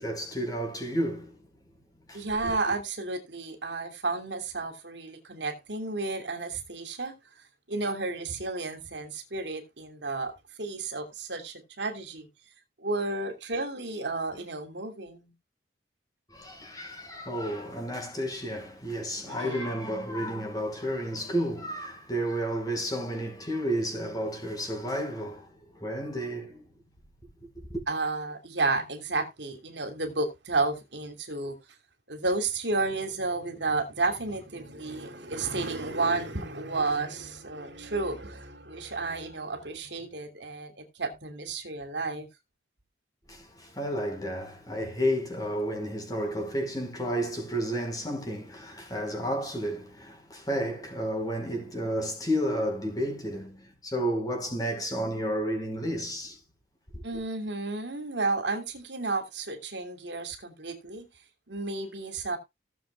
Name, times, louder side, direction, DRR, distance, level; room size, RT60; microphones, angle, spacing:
voice 1, 0.0-1.3 2.1-2.5 16.3-26.6 27.7-27.8 43.3-56.4, equal, 20° left, 5.1 m, -31 dB
voice 2, 2.1-7.1 7.7-10.3 10.6-12.3 12.8-15.3 19.3-19.8 27.9-31.6 32.1-42.3 57.0-61.0 61.5-62.4, right 3 dB, 70° right, 2.9 m, -32 dB
18.0 x 7.3 x 2.4 m
head